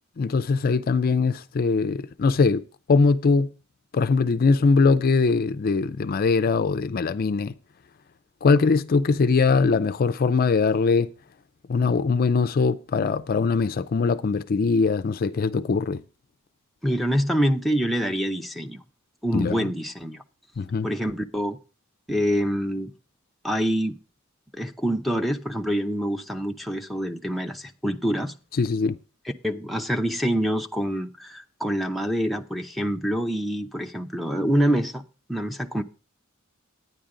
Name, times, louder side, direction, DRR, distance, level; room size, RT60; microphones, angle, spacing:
voice 1, 0.2-2.6 2.9-3.5 3.9-7.5 8.4-11.1 11.7-16.0 19.3-19.6 20.6-20.9 28.6-29.0, left 4 dB, 45° left, 0.4 m, -21 dB
voice 2, 16.8-18.8 19.2-20.2 20.8-21.6 22.1-22.9 23.4-24.0 24.5-28.3 29.4-35.0 35.3-35.8, equal, ahead, 0.6 m, -26 dB
10.0 x 9.5 x 3.8 m
head